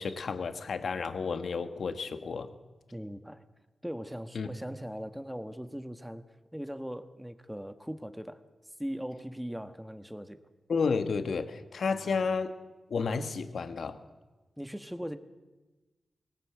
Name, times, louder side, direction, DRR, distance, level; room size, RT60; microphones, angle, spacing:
voice 1, 0.0-2.5 4.3-4.5 10.7-12.5 12.9-14.0, left 5 dB, 75° left, 9 dB, 1.6 m, -31 dB
voice 2, 2.9-3.5 3.8-8.4 8.8-10.4 11.9-12.3 14.6-15.2, equal, 5° right, 10 dB, 1.5 m, -40 dB
21.5 x 18.0 x 8.5 m, 1.2 s
cardioid pair, 70°, 0 cm